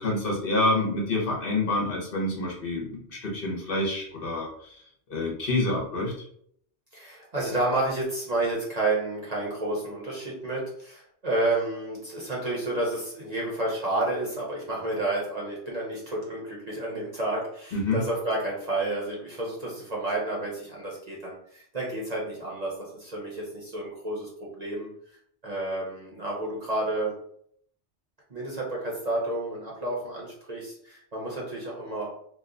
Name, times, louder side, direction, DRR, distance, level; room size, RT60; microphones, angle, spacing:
voice 1, 0.0-4.8 5.1-6.1 17.7-18.0, left 2 dB, 55° left, -2 dB, 1.0 m, -27 dB
voice 2, 6.9-24.3 24.6-24.9 25.4-27.1 28.3-32.1, right 2 dB, 40° right, -4 dB, 0.8 m, -30 dB
2.8 x 2.2 x 3.6 m, 0.66 s
omnidirectional pair, 1.2 m